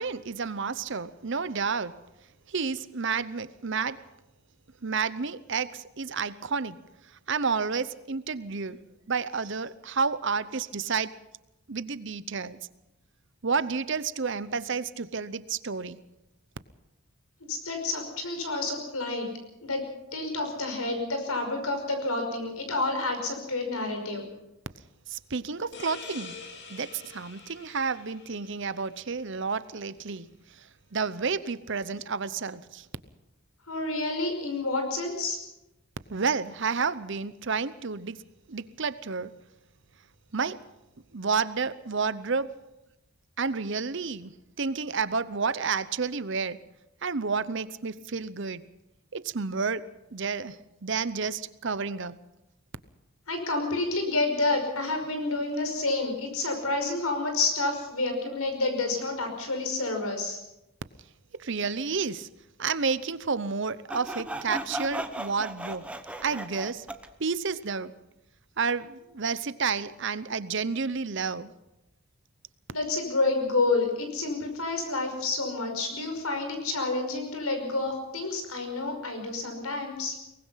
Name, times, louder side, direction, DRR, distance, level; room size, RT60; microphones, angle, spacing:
voice 1, 0.0-2.0 2.5-4.0 4.8-6.8 7.3-8.8 9.1-11.2 11.7-12.6 13.4-16.0 25.1-26.3 26.7-32.9 36.1-38.2 38.5-39.3 40.3-40.6 41.1-42.6 43.4-46.6 47.0-48.6 49.1-52.2 61.4-62.3 62.6-65.9 66.2-66.9 67.2-67.9 68.6-71.5, right 5 dB, 55° right, 15 dB, 0.8 m, -30 dB
voice 2, 17.5-19.3 19.6-19.8 20.1-24.2 33.7-35.4 53.3-60.4 72.7-80.2, left 3 dB, 80° left, 5 dB, 5.5 m, -29 dB
sound 1, 25.7-29.2, left 4 dB, 50° left, 2.8 m, -45 dB
Sawing, 63.9-67.1, right 1 dB, 5° right, 0.9 m, -36 dB
23.5 x 19.5 x 5.7 m, 0.91 s
head